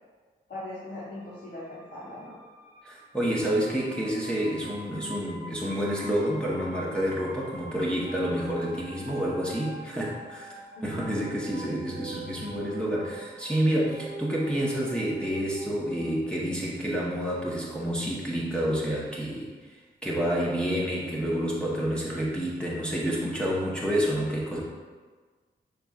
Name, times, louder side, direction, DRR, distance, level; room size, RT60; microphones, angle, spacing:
voice 1, 0.5-2.4 10.8-11.2, left 1 dB, 60° left, -8 dB, 1.0 m, -40 dB
sound 1, 1.0-16.2, right 1 dB, 50° right, 1.1 m, -44 dB
voice 2, 2.8-19.5 20.0-24.6, equal, 5° left, -5 dB, 0.8 m, -29 dB
5.1 x 3.2 x 2.3 m, 1.4 s
supercardioid pair, 40°, 19 cm